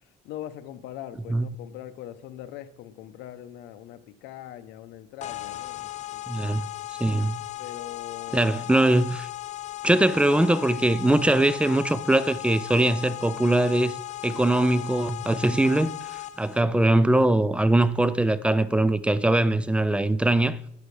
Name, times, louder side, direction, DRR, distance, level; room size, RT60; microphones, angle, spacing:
voice 1, 0.2-6.6 7.6-8.6 9.9-10.1, left 12 dB, 90° left, 0.7 m, -41 dB
sound 1, 5.2-16.6, left 15 dB, 45° left, 0.5 m, -37 dB
voice 2, 6.3-6.6 7.0-7.4 8.3-9.3 9.8-13.9 14.2-15.9 16.4-20.6, right 1 dB, 5° right, 0.4 m, -21 dB
12.0 x 9.3 x 3.2 m
cardioid pair, 110°, 17 cm